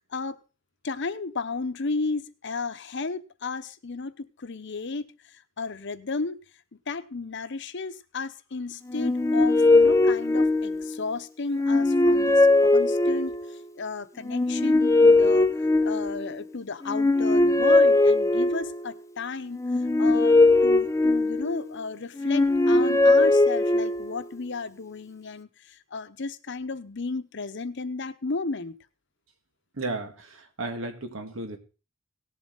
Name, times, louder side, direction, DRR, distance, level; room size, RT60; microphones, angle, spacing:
voice 1, 0.1-0.4 0.8-6.4 6.9-15.5 15.8-28.8, left 4 dB, 65° left, 11 dB, 0.8 m, -34 dB
sound 1, 8.9-11.0 11.5-13.5 14.2-16.4 16.8-18.9 19.6-21.7 22.2-24.2, left 2 dB, 15° left, 0.6 m, -20 dB
voice 2, 29.8-31.6, right 2 dB, 85° right, 7 dB, 1.9 m, -34 dB
18.0 x 7.3 x 3.9 m, 0.33 s
head